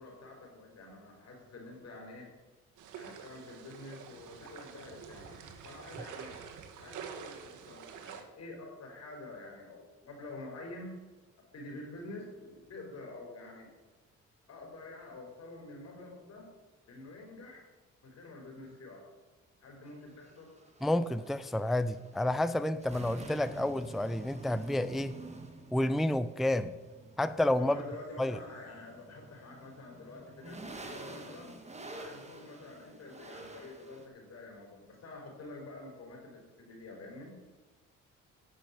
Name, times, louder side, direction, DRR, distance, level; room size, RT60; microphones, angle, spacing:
voice 1, 0.0-2.3 3.0-6.4 6.8-10.9 11.5-13.7 14.5-16.5 16.9-17.7 18.0-19.1 19.6-20.5 27.6-31.5 31.9-37.4, left 2 dB, 60° left, 4.3 m, -48 dB
sound 1, 2.8-8.2, right 7 dB, 90° right, 1.5 m, -47 dB
sound 2, 19.9-34.1, right 2 dB, 20° right, 1.7 m, -49 dB
voice 2, 20.8-25.2 25.7-26.7 27.2-27.8 28.2-28.4, left 1 dB, ahead, 0.4 m, -30 dB
10.5 x 6.2 x 8.3 m
cardioid pair, 90°, 30 cm